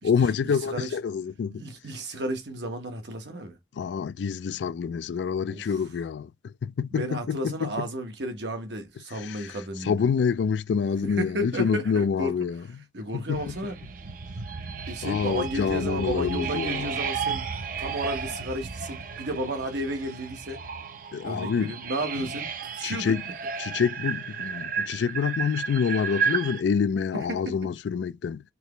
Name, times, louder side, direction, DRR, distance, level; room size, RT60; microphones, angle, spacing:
voice 1, 0.0-1.6 3.8-7.9 9.1-12.8 13.1-13.5 15.0-16.9 21.1-21.7 22.8-23.2 23.6-28.4, left 6 dB, 80° left, 0.3 m, -27 dB
voice 2, 1.6-3.6 5.5-5.7 6.9-10.0 11.0-12.4 12.9-13.8 14.9-17.5 17.8-20.6 21.2-23.1 27.1-27.6, right 1 dB, 80° right, 1.2 m, -33 dB
sound 1, 13.3-26.6, right 6 dB, 50° right, 0.5 m, -33 dB
4.6 x 2.9 x 3.3 m
head